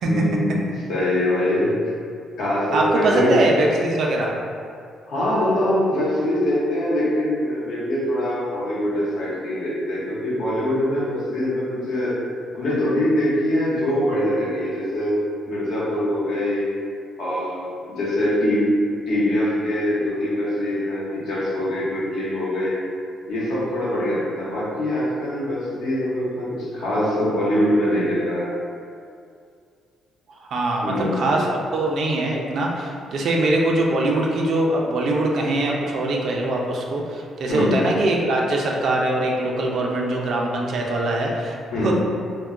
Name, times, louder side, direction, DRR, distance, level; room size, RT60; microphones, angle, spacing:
voice 1, 0.0-1.8 2.4-3.3 5.1-12.2 12.5-16.7 17.2-18.7 19.1-22.8 23.3-28.5 30.8-31.3 37.5-37.8 41.7-41.9, left 1 dB, 75° left, -7 dB, 0.9 m, -23 dB
voice 2, 2.7-4.3 30.4-41.9, right 2 dB, 65° right, -1 dB, 0.4 m, -22 dB
2.2 x 2.1 x 3.6 m, 2.3 s
cardioid pair, 90°, 0 cm